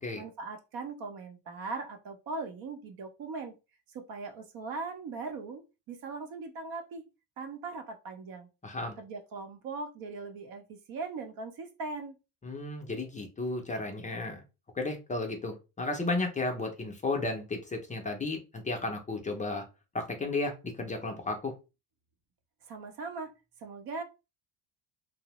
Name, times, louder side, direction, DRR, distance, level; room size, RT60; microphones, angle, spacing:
voice 1, 0.1-3.5 3.9-5.6 5.9-7.0 7.4-8.5 9.0-12.2 22.7-23.3 23.6-24.0, right 3 dB, 60° right, 6 dB, 0.8 m, -39 dB
voice 2, 8.6-9.0 12.4-14.4 14.7-19.6 19.9-21.5, left 2 dB, 20° left, 3 dB, 0.5 m, -33 dB
2.6 x 2.0 x 3.0 m, 0.28 s
cardioid pair, 100°, 41 cm